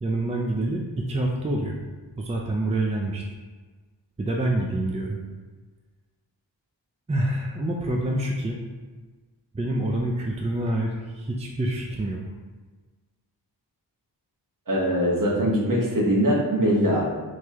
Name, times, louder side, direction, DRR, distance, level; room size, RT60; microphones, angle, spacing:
voice 1, 0.0-1.8 2.2-3.2 4.2-5.2 7.1-8.6 9.5-12.2, right 1 dB, 15° right, -1 dB, 0.5 m, -27 dB
voice 2, 14.7-17.0, equal, 45° right, -3 dB, 1.3 m, -22 dB
4.6 x 3.2 x 3.5 m, 1.4 s
cardioid pair, 75°, 44 cm